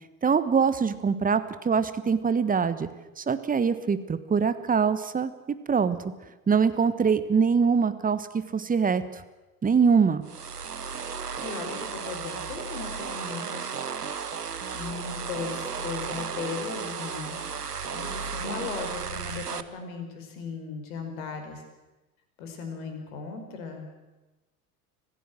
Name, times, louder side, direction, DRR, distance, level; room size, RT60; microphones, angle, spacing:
voice 1, 0.2-2.9 3.2-6.0 6.5-8.3 8.5-9.0 9.6-10.2, right 6 dB, 20° right, 12 dB, 1.5 m, -23 dB
sound 1, 10.3-19.6, right 6 dB, 90° right, 0.9 m, -34 dB
voice 2, 11.4-13.7 14.7-17.4 17.9-21.6 22.4-24.0, left 5 dB, 65° left, 5 dB, 5.1 m, -37 dB
26.0 x 15.5 x 7.8 m, 1.1 s
figure-of-eight pair, 75°, 45 cm